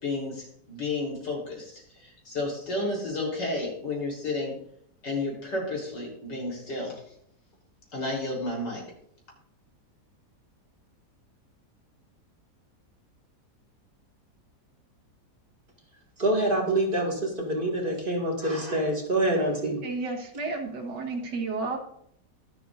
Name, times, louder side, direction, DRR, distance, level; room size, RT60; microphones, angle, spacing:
voice 1, 0.0-4.5 5.0-7.0 7.9-8.8, left 2 dB, 80° left, -2 dB, 4.6 m, -32 dB
voice 2, 16.2-19.8, right 1 dB, 30° right, -1 dB, 2.4 m, -26 dB
voice 3, 19.8-21.8, right 3 dB, 80° right, 4 dB, 2.1 m, -32 dB
23.0 x 7.7 x 2.6 m, 0.69 s
omnidirectional pair, 1.9 m